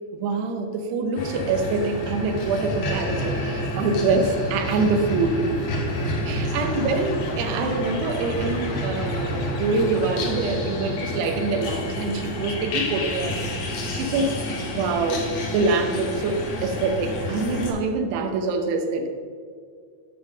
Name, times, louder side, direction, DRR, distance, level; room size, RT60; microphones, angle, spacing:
voice 1, 0.1-5.5 6.3-13.4 13.9-14.4 14.7-19.1, right 3 dB, 80° right, 5 dB, 2.9 m, -25 dB
sound 1, 1.2-17.7, left 1 dB, 65° left, 1.6 m, -29 dB
sound 2, 6.6-10.7, left 4 dB, 90° left, 1.7 m, -38 dB
8.3 x 5.5 x 6.0 m, 2.1 s
omnidirectional pair, 4.8 m